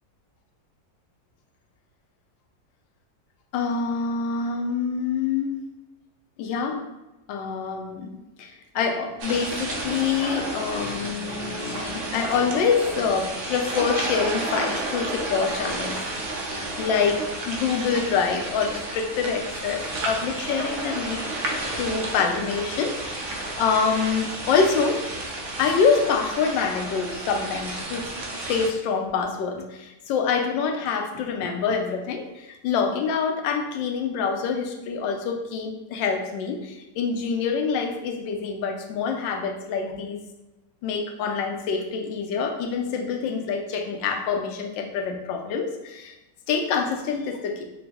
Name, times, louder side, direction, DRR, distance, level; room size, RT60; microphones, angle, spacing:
voice 1, 3.5-5.6 6.4-6.8 7.3-16.0 16.8-21.2 21.8-25.0 25.3-28.1 28.5-40.2 40.8-46.1 46.5-47.6, left 5 dB, 90° left, 3 dB, 1.3 m, -26 dB
sound 1, 9.2-28.7, right 2 dB, 70° right, 0.7 m, -32 dB
4.8 x 2.0 x 3.4 m, 1.0 s
omnidirectional pair, 2.0 m